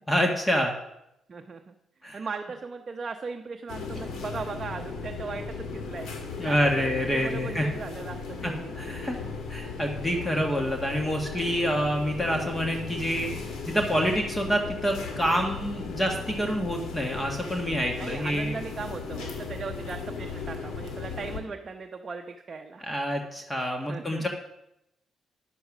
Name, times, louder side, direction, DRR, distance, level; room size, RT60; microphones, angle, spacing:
voice 1, 0.1-0.7 2.0-2.2 6.4-7.6 8.4-9.2 9.5-13.3 13.7-18.5 22.8-24.3, equal, 15° left, 2 dB, 1.5 m, -27 dB
voice 2, 1.3-1.7 2.1-9.1 17.9-22.8 23.9-24.3, right 4 dB, 40° right, 4 dB, 0.8 m, -38 dB
sound 1, 3.7-21.4, left 4 dB, 70° left, 1.9 m, -37 dB
9.8 x 7.0 x 6.0 m, 0.84 s
cardioid pair, 90°, 0 cm